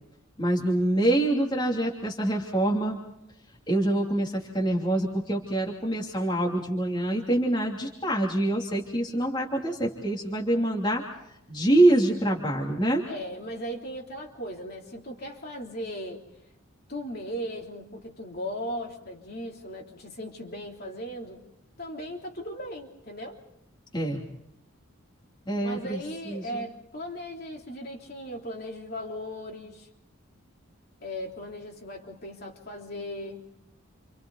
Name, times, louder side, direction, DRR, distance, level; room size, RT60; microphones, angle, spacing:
voice 1, 0.4-3.0 3.7-11.0 11.5-13.0 23.9-24.2 25.5-26.0 26.3-26.6, right 1 dB, 20° left, -1 dB, 2.9 m, -25 dB
voice 2, 13.1-16.2 16.9-21.4 21.8-23.4 25.6-29.9 31.0-33.5, equal, 45° left, 0 dB, 3.5 m, -37 dB
30.0 x 27.5 x 4.1 m, 0.81 s
head